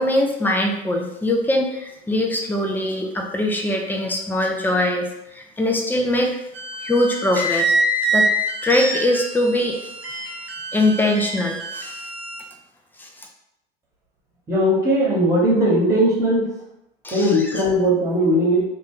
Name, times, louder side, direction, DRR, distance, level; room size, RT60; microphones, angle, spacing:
voice 1, 0.0-5.1 5.3-6.4 6.8-7.7 8.1-8.3 8.6-9.8 10.7-12.0 13.0-13.1 17.0-17.6, left 1 dB, 5° left, 2 dB, 0.6 m, -22 dB
sound 1, 6.5-12.4, right 1 dB, 85° right, 0.8 m, -25 dB
voice 2, 14.5-16.5 17.1-18.6, equal, 10° right, -3 dB, 1.5 m, -18 dB
4.2 x 2.6 x 3.7 m, 0.85 s
figure-of-eight pair, 80°, 31 cm